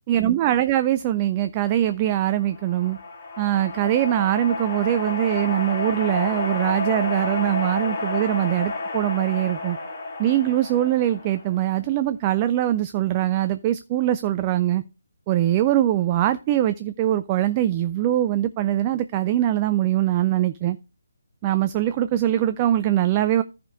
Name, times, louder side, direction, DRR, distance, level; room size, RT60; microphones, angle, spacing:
voice 1, 0.1-3.0 3.4-9.8 10.2-14.8 15.3-20.8 21.4-23.4, right 13 dB, 25° right, 0.4 m, -22 dB
sound 1, 2.3-11.9, left 3 dB, 35° left, 2.5 m, -31 dB
14.0 x 5.1 x 3.5 m
figure-of-eight pair, 145°, 0 cm